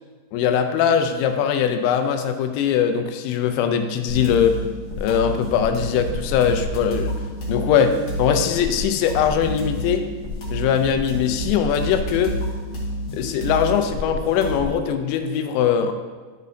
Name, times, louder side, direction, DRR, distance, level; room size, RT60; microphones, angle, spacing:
voice 1, 0.3-4.5 5.0-7.1 7.5-10.0 10.5-12.4 13.1-15.9, left 8 dB, 85° left, 7 dB, 2.8 m, -21 dB
sound 1, 4.1-14.7, left 1 dB, 50° left, 2.0 m, -29 dB
12.0 x 6.3 x 2.7 m, 1.4 s
omnidirectional pair, 5.3 m